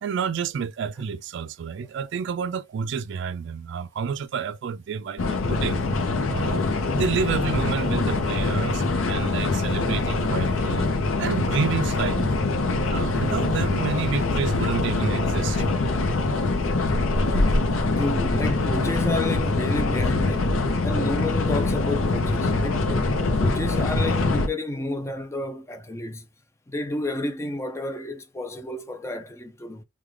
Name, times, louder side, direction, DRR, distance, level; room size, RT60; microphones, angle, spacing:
voice 1, 0.0-5.8 6.3-6.6 6.9-10.9 11.2-12.5 12.9-15.7, right 6 dB, 60° right, 0.3 m, -29 dB
sound 1, 5.2-24.5, left 2 dB, 90° left, 0.6 m, -24 dB
voice 2, 17.2-17.7 18.0-26.3 26.7-29.8, left 2 dB, 15° left, 0.4 m, -31 dB
3.2 x 2.2 x 3.4 m
head